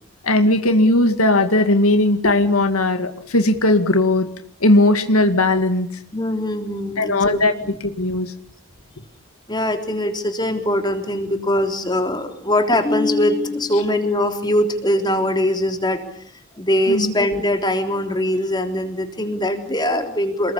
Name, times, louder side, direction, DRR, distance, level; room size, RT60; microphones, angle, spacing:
voice 1, 0.2-4.3 4.6-6.0 7.0-7.5 7.8-8.3 16.9-17.1, left 2 dB, 80° left, 7 dB, 2.2 m, -17 dB
voice 2, 6.1-7.8 9.5-16.0 16.6-20.5, left 1 dB, 20° left, 5 dB, 3.5 m, -21 dB
28.0 x 21.0 x 8.7 m, 0.66 s
head